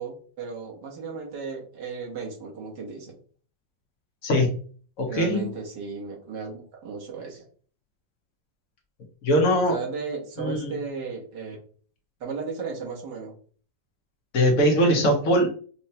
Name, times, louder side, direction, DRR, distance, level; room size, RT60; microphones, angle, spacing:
voice 1, 0.0-3.2 5.1-7.5 9.7-11.6 12.2-13.4, right 5 dB, 85° right, -1 dB, 1.7 m, -35 dB
voice 2, 4.2-4.6 5.0-5.5 9.2-9.8 10.4-10.7 14.3-15.5, equal, 60° left, 1 dB, 1.2 m, -21 dB
5.4 x 2.1 x 2.7 m, 0.43 s
omnidirectional pair, 1.8 m